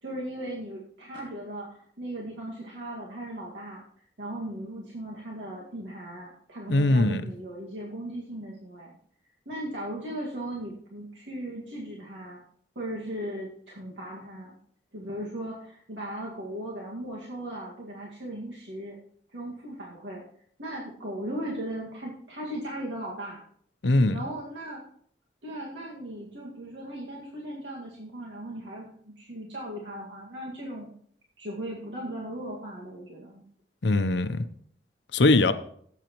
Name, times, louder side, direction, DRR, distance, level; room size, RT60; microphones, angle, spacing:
voice 1, 0.0-3.8 4.2-8.9 9.5-12.4 12.8-14.6 14.9-19.0 19.3-20.2 20.6-23.4 24.1-24.8 25.4-30.9 31.4-33.4, right 1 dB, 90° right, 2.0 m, -37 dB
voice 2, 6.7-7.2 23.8-24.2 33.8-34.4 35.1-35.5, left 2 dB, 80° left, 0.7 m, -21 dB
17.0 x 8.1 x 3.1 m
head